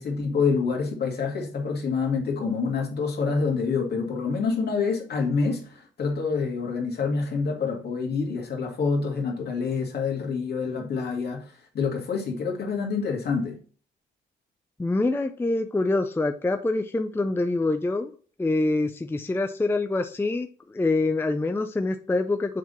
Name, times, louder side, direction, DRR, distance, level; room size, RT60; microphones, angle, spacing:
voice 1, 0.0-13.6, left 5 dB, 55° left, 2.3 m, -27 dB
voice 2, 14.8-18.1 18.4-22.6, left 2 dB, 10° left, 0.5 m, -25 dB
7.5 x 3.6 x 4.1 m
cardioid pair, 90°, 20 cm